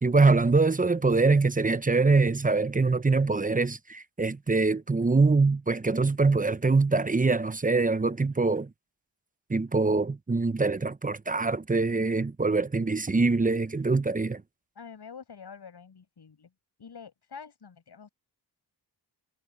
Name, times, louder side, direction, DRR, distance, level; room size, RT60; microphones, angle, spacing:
voice 1, 0.0-8.7 9.5-14.4, right 3 dB, 20° right, 0.7 m, -24 dB
voice 2, 14.7-16.5 16.8-18.1, left 6 dB, 70° left, 7.7 m, -46 dB
cardioid pair, 60°, 41 cm